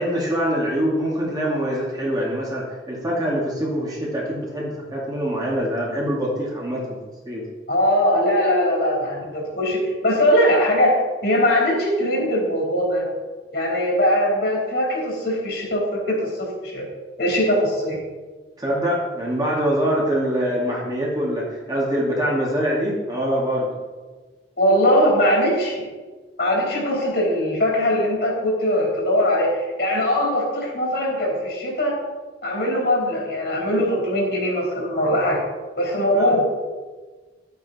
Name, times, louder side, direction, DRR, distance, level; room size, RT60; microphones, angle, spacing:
voice 1, 0.0-7.0 7.3-7.4 18.6-23.7 36.1-36.4, equal, 20° right, -4 dB, 2.3 m, -24 dB
voice 2, 7.7-13.0 13.5-16.9 17.2-18.0 24.6-25.8 26.4-32.0 32.4-35.4 35.8-36.4, equal, 60° left, -3 dB, 3.8 m, -21 dB
11.5 x 9.0 x 4.2 m, 1.3 s
head